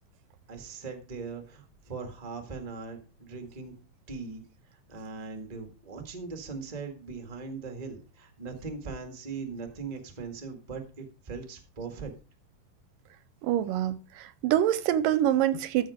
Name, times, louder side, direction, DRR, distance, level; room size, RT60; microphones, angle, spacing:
voice 1, 0.5-3.7 4.1-4.4 4.9-12.1, right 4 dB, 20° right, 1.0 m, -40 dB
voice 2, 13.4-15.9, right 11 dB, 80° right, 2.2 m, -26 dB
14.0 x 6.1 x 5.0 m
omnidirectional pair, 4.1 m